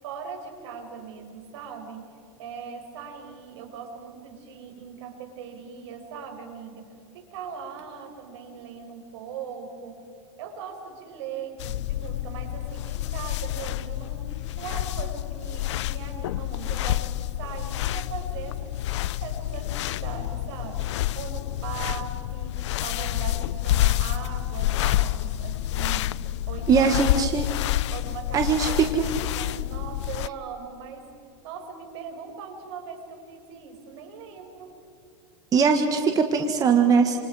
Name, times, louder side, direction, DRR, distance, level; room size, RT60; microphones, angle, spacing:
voice 1, 0.0-10.0 10.4-26.9 27.9-31.1 31.4-34.7, right 6 dB, 65° right, 4 dB, 5.4 m, -40 dB
sound 1, 11.6-30.3, left 14 dB, 75° left, 0.5 m, -28 dB
voice 2, 26.7-27.5 28.3-29.1 35.5-37.2, right 5 dB, 25° right, 5 dB, 1.6 m, -21 dB
28.5 x 27.5 x 4.9 m, 2.6 s
supercardioid pair, 145°, 15 cm